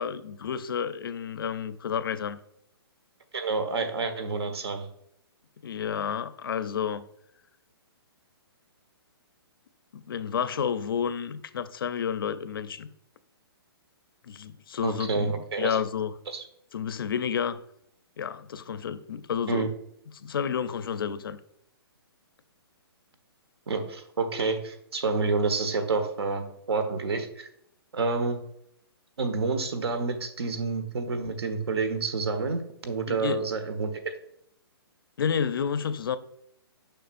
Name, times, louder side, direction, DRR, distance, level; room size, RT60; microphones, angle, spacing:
voice 1, 0.0-2.4 5.6-7.1 9.9-12.9 14.2-16.1 16.7-17.6 18.2-19.7 20.1-21.4 33.1-33.4 35.2-36.2, left 7 dB, 60° left, 0.5 m, -30 dB
voice 2, 3.3-4.8 14.8-15.8 16.3-16.4 19.5-19.7 23.7-27.5 27.9-28.4 29.2-33.9, right 4 dB, 75° right, 1.3 m, -28 dB
6.8 x 5.9 x 2.5 m
hypercardioid pair, 170°, 13 cm